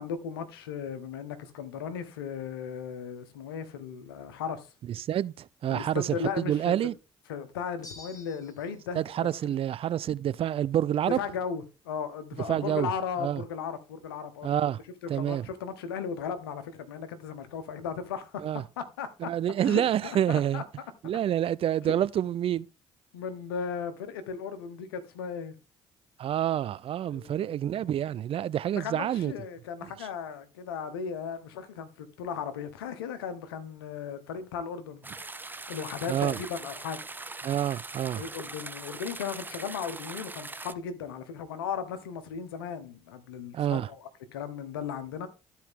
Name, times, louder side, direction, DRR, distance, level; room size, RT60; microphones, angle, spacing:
voice 1, 0.0-4.7 5.7-6.7 7.3-9.3 11.1-14.6 15.1-19.3 19.6-20.6 21.8-22.0 23.1-25.5 27.1-27.8 28.7-35.0 35.7-37.0 38.2-45.3, left 6 dB, 90° left, 1.0 m, -36 dB
voice 2, 5.0-6.9 8.9-11.2 12.5-12.9 13.2-13.4 14.4-14.8 15.1-15.5 18.4-18.6 19.2-20.6 21.0-22.7 26.2-29.3 30.0-30.1 36.1-36.4 37.4-38.2 43.5-43.9, right 11 dB, 50° right, 0.5 m, -28 dB
sound 1, 7.8-8.8, left 2 dB, 30° left, 2.2 m, -48 dB
sound 2, 35.0-40.7, right 3 dB, 15° right, 0.7 m, -41 dB
13.0 x 4.5 x 3.6 m
hypercardioid pair, 50°, 12 cm